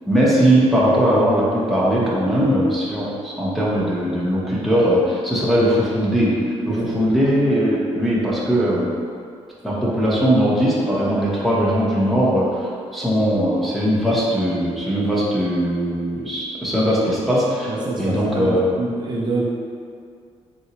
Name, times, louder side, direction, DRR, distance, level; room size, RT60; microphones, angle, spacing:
voice 1, 0.1-6.4 6.6-8.9 9.6-18.7, equal, ahead, -8 dB, 0.6 m, -19 dB
voice 2, 17.7-19.5, right 3 dB, 40° right, -5 dB, 0.4 m, -26 dB
3.8 x 2.1 x 2.8 m, 2.3 s
cardioid pair, 130°, 12 cm